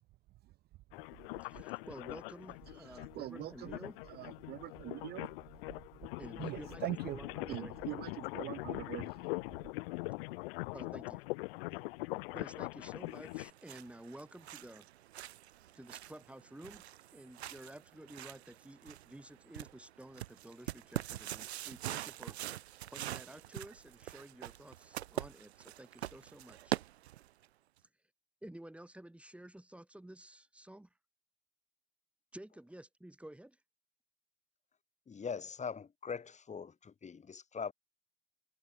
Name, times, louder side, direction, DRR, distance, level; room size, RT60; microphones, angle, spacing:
sound 1, 0.9-13.5, left 23 dB, 55° left, 3.2 m, -42 dB
voice 1, 1.4-4.0 6.2-7.8 10.7-11.2 11.7-11.8 12.3-14.9 15.7-16.8 17.1-22.4 22.9-26.8 28.4-30.9 32.3-33.6, right 1 dB, 5° right, 2.6 m, -52 dB
voice 2, 2.9-3.8 4.2-5.3 6.4-7.2 7.5-9.1, right 17 dB, 30° right, 0.5 m, -42 dB
sound 2, 13.3-27.5, right 13 dB, 70° right, 0.7 m, -44 dB
voice 3, 35.1-37.7, left 6 dB, 20° left, 2.8 m, -42 dB
figure-of-eight pair, 75°, 34 cm